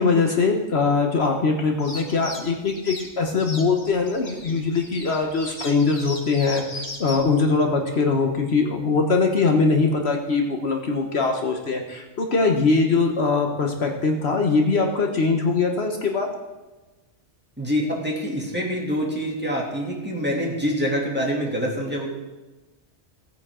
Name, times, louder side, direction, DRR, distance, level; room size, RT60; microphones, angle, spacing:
voice 1, 0.0-6.6 7.0-16.3, left 4 dB, 60° left, 3 dB, 1.4 m, -22 dB
sound 1, 1.8-7.2, left 2 dB, 30° left, 1.6 m, -37 dB
voice 2, 17.6-22.1, equal, 10° right, -3 dB, 2.6 m, -26 dB
17.5 x 9.3 x 3.8 m, 1.1 s
omnidirectional pair, 1.2 m